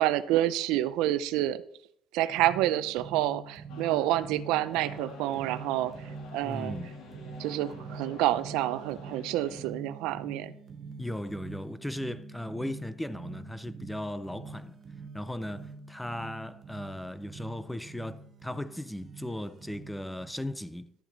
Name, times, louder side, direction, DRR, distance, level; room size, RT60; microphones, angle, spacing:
voice 1, 0.0-1.6 2.1-5.9 6.3-6.7 7.4-10.5, right 14 dB, 85° right, 0.5 m, -28 dB
sound 1, 2.3-20.3, right 4 dB, 30° right, 0.9 m, -45 dB
sound 2, 3.7-9.7, left 3 dB, 75° left, 2.6 m, -49 dB
voice 2, 6.4-6.9 11.0-14.7 15.1-20.9, left 1 dB, 5° left, 0.4 m, -37 dB
12.5 x 7.2 x 4.0 m
cardioid pair, 160°, 0 cm